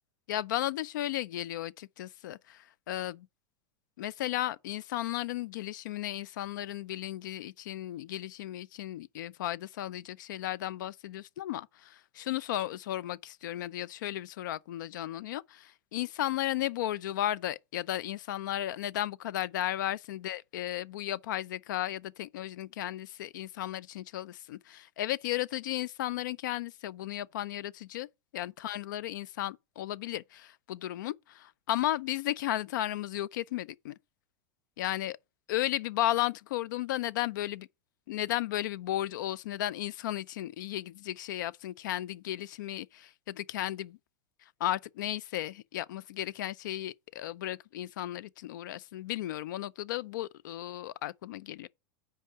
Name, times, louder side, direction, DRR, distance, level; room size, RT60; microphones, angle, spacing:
voice 1, 0.3-3.3 4.0-28.1 28.3-34.0 34.8-35.2 35.5-37.7 38.1-44.0 44.6-51.7, left 13 dB, 80° left, 0.5 m, -34 dB
8.2 x 4.8 x 6.6 m
supercardioid pair, 160°, 10 cm